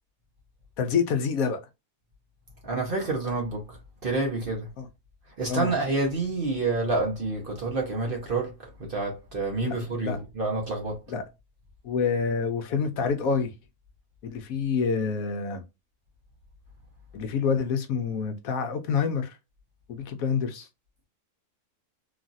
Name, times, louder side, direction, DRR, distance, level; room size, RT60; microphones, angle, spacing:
voice 1, 0.8-1.6 4.8-4.9 5.5-5.7 9.6-10.2 11.1-11.2 11.8-13.5 14.2-15.6 17.1-19.4 19.9-20.7, left 6 dB, 70° left, 1.0 m, -27 dB
voice 2, 2.6-3.6 4.0-4.7 5.4-8.5 8.8-11.0, right 3 dB, 45° right, 0.8 m, -28 dB
3.0 x 2.4 x 2.6 m
omnidirectional pair, 1.6 m